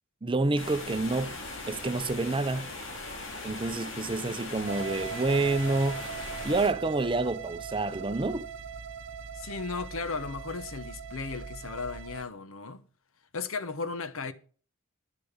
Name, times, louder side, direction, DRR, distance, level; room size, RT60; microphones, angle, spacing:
voice 1, 0.2-1.4 1.7-2.7 3.4-6.1 6.4-8.5, right 2 dB, 25° right, 0.7 m, -28 dB
sound 1, 0.6-6.7, left 2 dB, 65° left, 3.3 m, -39 dB
sound 2, 4.7-12.2, right 6 dB, 65° right, 0.8 m, -40 dB
voice 2, 9.3-12.8 13.3-14.3, left 4 dB, 80° left, 1.0 m, -35 dB
10.5 x 6.7 x 7.2 m
head